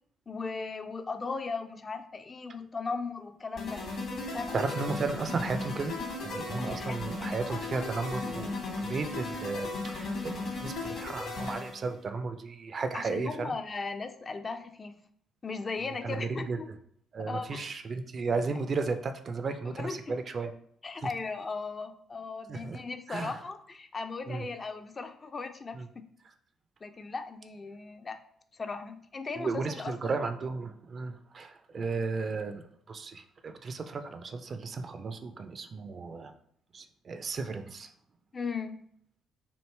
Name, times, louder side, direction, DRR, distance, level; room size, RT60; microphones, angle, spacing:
voice 1, 0.3-3.8 4.3-4.7 6.5-7.6 12.9-15.0 15.4-16.7 17.2-17.7 19.7-20.1 20.8-25.8 26.8-28.2 28.5-30.1 38.3-38.9, left 4 dB, 35° left, 7 dB, 0.3 m, -37 dB
sound 1, 3.6-11.9, left 3 dB, 55° left, 1.0 m, -36 dB
voice 2, 4.5-5.9 6.2-13.6 16.0-16.6 17.1-20.5 22.5-22.8 23.1-23.4 24.3-24.4 25.7-25.9 29.3-36.3 36.7-37.9, right 4 dB, 40° right, 8 dB, 0.3 m, -34 dB
3.1 x 2.5 x 3.1 m, 0.66 s
figure-of-eight pair, 45°, 0 cm